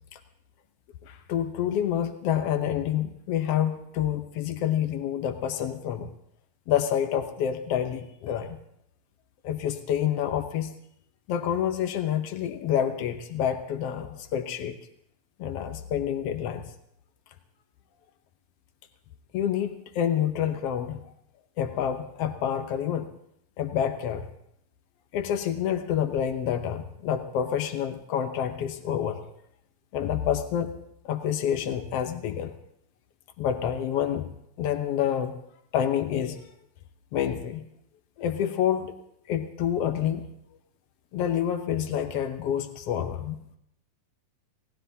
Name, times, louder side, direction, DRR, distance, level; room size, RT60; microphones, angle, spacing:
voice 1, 1.1-6.1 6.7-8.6 9.4-10.7 11.3-14.8 15.4-16.6 19.3-21.1 21.6-23.1 23.6-24.2 25.1-29.3 29.9-30.7 31.0-32.5 33.4-35.3 35.7-36.4 37.1-37.6 38.2-39.0 39.3-40.3 41.1-43.6, left 9 dB, 85° left, 7 dB, 1.3 m, -28 dB
29.0 x 17.5 x 2.8 m, 0.76 s
omnidirectional pair, 3.9 m